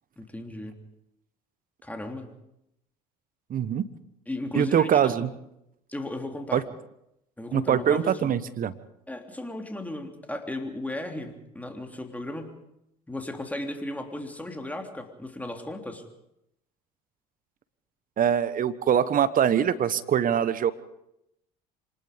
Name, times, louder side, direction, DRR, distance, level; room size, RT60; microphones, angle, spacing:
voice 1, 0.2-0.8 1.8-2.3 4.3-5.2 5.9-6.6 7.4-8.3 9.1-12.6 13.1-16.0, left 1 dB, 10° left, 4 dB, 3.3 m, -35 dB
voice 2, 3.5-3.9 4.5-5.3 6.5-6.6 7.5-8.7 18.2-20.7, right 9 dB, 45° right, 15 dB, 1.2 m, -23 dB
26.0 x 19.5 x 5.3 m, 0.82 s
hypercardioid pair, 65°, 20 cm